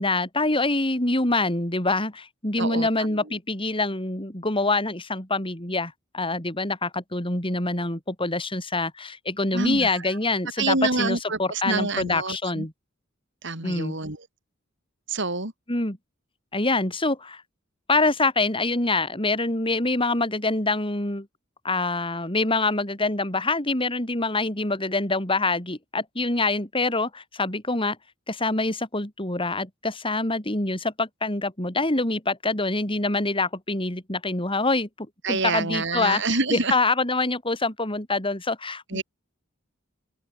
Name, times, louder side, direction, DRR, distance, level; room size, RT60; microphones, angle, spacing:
voice 1, 0.0-12.7 13.6-14.0 15.7-16.0 16.5-17.4 17.9-21.3 21.6-28.0 28.3-34.9 35.3-36.2 36.5-39.0, left 2 dB, 25° left, 5.3 m, -25 dB
voice 2, 2.6-3.2 9.5-10.2 10.6-12.7 13.4-14.2 15.1-15.5 35.2-36.7 38.9-39.0, right 3 dB, 65° right, 5.3 m, -27 dB
open air
head